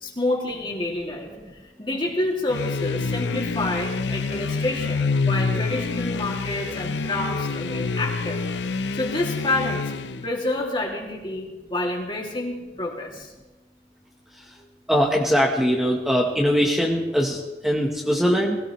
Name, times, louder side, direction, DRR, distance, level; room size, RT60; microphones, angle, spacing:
voice 1, 0.0-1.3 1.6-8.4 8.9-9.9 10.2-13.3, left 2 dB, 30° left, -1 dB, 2.5 m, -28 dB
sound 1, 2.5-10.3, left 4 dB, 90° left, 0.6 m, -27 dB
voice 2, 14.9-18.6, equal, ahead, -1 dB, 1.1 m, -21 dB
21.5 x 16.5 x 3.1 m, 1.2 s
head